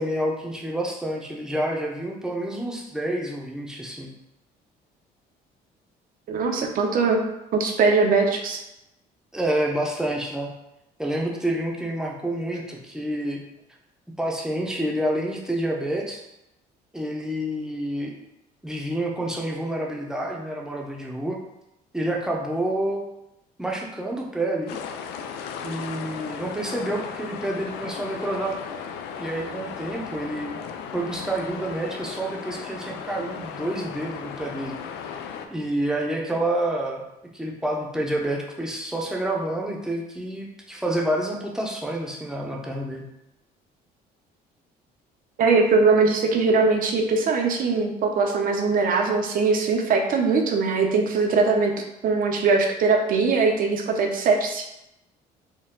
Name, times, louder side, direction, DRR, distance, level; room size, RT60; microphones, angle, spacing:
voice 1, 0.0-4.1 9.3-10.5 11.0-13.4 14.2-16.2 16.9-18.1 18.6-21.4 21.9-23.0 23.6-24.8 25.6-28.5 29.2-30.6 30.9-34.8 35.5-37.0 37.3-43.0, right 1 dB, 5° right, -1 dB, 0.7 m, -28 dB
voice 2, 6.3-7.2 7.5-8.6 45.4-51.7 52.0-54.6, right 4 dB, 55° right, 3 dB, 0.7 m, -21 dB
sound 1, 24.7-35.5, left 7 dB, 85° left, 0.4 m, -36 dB
4.5 x 2.2 x 3.7 m, 0.88 s
cardioid pair, 110°, 17 cm